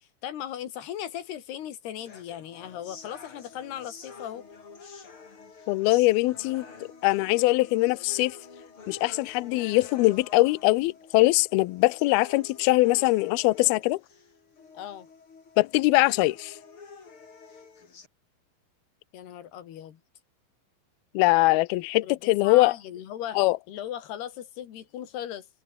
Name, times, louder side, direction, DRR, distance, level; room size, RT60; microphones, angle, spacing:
voice 1, 0.0-4.5 14.7-15.1 19.1-20.0 22.0-23.4 23.7-25.5, left 10 dB, 65° left, 4.0 m, -38 dB
sound 1, 2.1-18.1, left 5 dB, 30° left, 3.6 m, -48 dB
voice 2, 5.7-6.7 7.0-8.4 8.9-14.0 15.6-16.5 21.1-22.7 23.4-23.6, left 20 dB, 85° left, 2.2 m, -22 dB
omnidirectional pair, 5.3 m